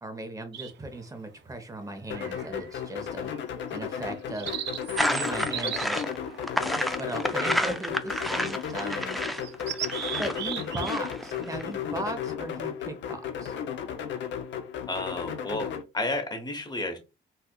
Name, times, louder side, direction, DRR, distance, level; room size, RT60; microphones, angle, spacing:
voice 1, 0.0-3.3 3.7-4.6 5.0-6.0 7.0-9.2 10.2-13.6, right 1 dB, 15° right, 7 dB, 0.9 m, -37 dB
sound 1, 0.5-1.0 2.1-2.8 3.2-3.4 3.9-7.4 8.1-8.5 8.9-9.0 9.4-11.0 11.3-11.5, right 10 dB, 65° right, 0.4 m, -37 dB
sound 2, 2.1-15.8, left 8 dB, 65° left, 0.6 m, -34 dB
sound 3, 5.0-11.6, equal, ahead, 0.3 m, -30 dB
voice 2, 14.9-15.7 15.9-17.0, left 2 dB, 20° left, 5 dB, 1.0 m, -31 dB
4.4 x 2.4 x 2.3 m, 0.27 s
cardioid pair, 90°, 20 cm